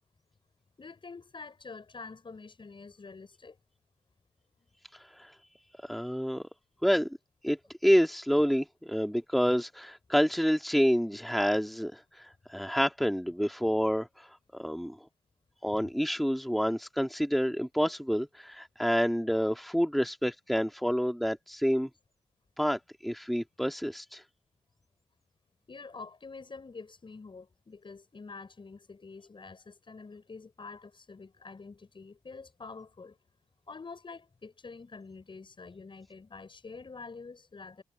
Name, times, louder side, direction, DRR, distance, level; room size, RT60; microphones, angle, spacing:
voice 1, 0.8-3.6 15.7-15.8 25.7-33.2 33.7-37.8, left 4 dB, 45° left, 6.5 m, -47 dB
voice 2, 5.8-6.5 6.8-7.1 7.4-14.3 14.5-15.0 15.6-21.9 22.6-24.2, equal, ahead, 2.5 m, -28 dB
supercardioid pair, 45°, 12 cm